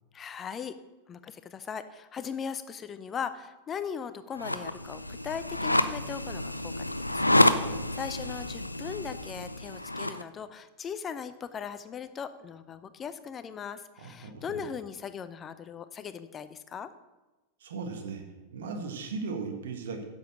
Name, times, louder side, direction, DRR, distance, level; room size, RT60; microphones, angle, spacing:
voice 1, 0.1-0.8 1.1-7.2 7.5-16.9, left 7 dB, 25° left, 13 dB, 0.6 m, -39 dB
sound 1, 4.4-10.2, left 1 dB, 90° left, 0.5 m, -28 dB
voice 2, 14.0-14.4 17.6-18.2 18.5-20.0, right 4 dB, 60° right, 4 dB, 1.7 m, -37 dB
10.5 x 7.2 x 6.3 m, 1.1 s
figure-of-eight pair, 90°, 0 cm